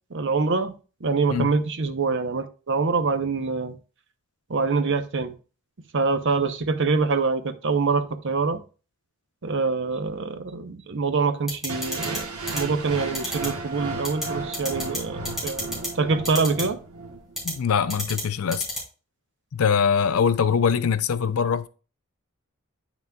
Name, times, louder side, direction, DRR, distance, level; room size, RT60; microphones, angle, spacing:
voice 1, 0.1-0.7 1.0-3.7 4.5-5.3 5.9-8.6 9.4-15.7 16.0-16.8, right 4 dB, 55° right, 0.7 m, -25 dB
sound 1, 11.5-12.2 12.5-12.6 13.1-13.5 14.0-14.2 14.5-15.0 15.2-15.9 16.2-16.6 17.4-17.5 17.9-18.2 18.5-18.8, left 1 dB, ahead, 3.3 m, -29 dB
sound 2, 11.7-17.7, right 3 dB, 85° right, 1.2 m, -34 dB
voice 2, 17.4-18.7 19.5-21.7, left 6 dB, 80° left, 0.5 m, -22 dB
9.0 x 5.9 x 2.2 m
head